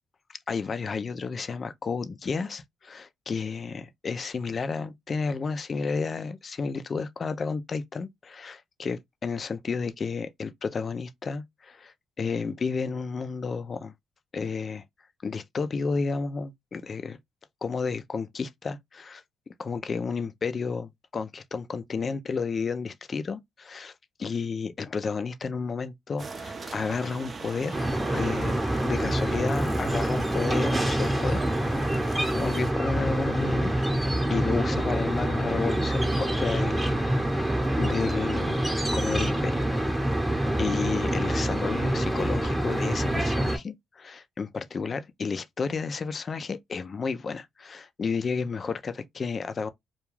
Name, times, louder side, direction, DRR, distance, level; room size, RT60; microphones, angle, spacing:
voice 1, 0.5-13.9 14.3-14.8 15.2-17.2 17.6-19.2 19.6-23.9 24.2-27.8 28.1-28.6 28.8-33.7 34.3-37.0 37.3-38.6 38.9-39.6 40.6-49.7, left 5 dB, 40° left, 0.4 m, -32 dB
sound 1, 26.2-32.7, right 4 dB, 40° right, 0.5 m, -39 dB
sound 2, 27.7-43.6, right 1 dB, 10° right, 0.8 m, -26 dB
2.3 x 2.3 x 3.0 m
cardioid pair, 90°, 0 cm